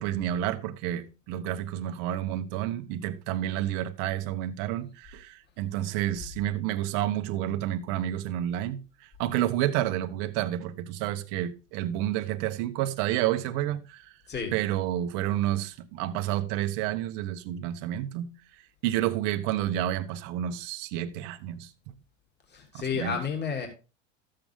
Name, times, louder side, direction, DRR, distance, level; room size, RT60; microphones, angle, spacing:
voice 1, 0.0-14.1 14.5-18.3 18.8-21.9 22.7-23.2, right 12 dB, 65° right, 1.2 m, -30 dB
voice 2, 22.5-23.7, left 6 dB, 25° left, 2.9 m, -31 dB
13.0 x 7.7 x 3.6 m
hypercardioid pair, 95°, 37 cm